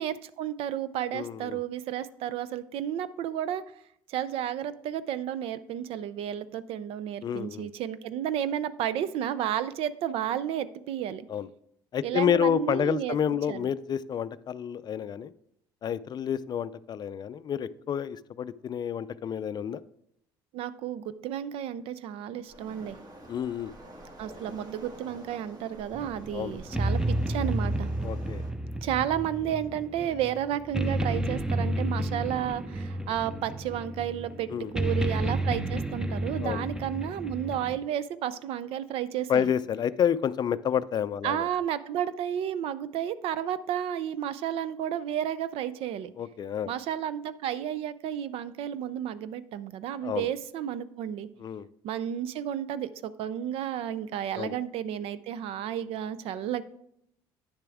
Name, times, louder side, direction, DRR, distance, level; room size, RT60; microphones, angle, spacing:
voice 1, 0.0-3.6 4.1-11.3 12.0-13.2 13.5-13.7 20.5-23.0 24.2-27.9 28.8-34.5 34.7-39.5 41.2-46.1 46.7-51.3 51.8-56.6, right 10 dB, 65° right, 15 dB, 0.5 m, -32 dB
voice 2, 1.1-1.6 7.2-7.7 11.3-11.5 11.9-15.3 15.8-19.8 23.3-23.7 26.3-26.6 28.0-28.4 34.5-34.9 36.4-36.7 39.3-41.5 46.2-46.7 50.0-50.3 51.4-51.7 54.4-54.6, left 8 dB, 45° left, 15 dB, 0.4 m, -29 dB
Waves surf, 22.4-28.5, right 1 dB, 40° right, 2.0 m, -48 dB
sound 1, 25.9-37.8, right 1 dB, 5° right, 0.7 m, -31 dB
9.6 x 6.8 x 3.5 m, 0.74 s
supercardioid pair, 75°, 10 cm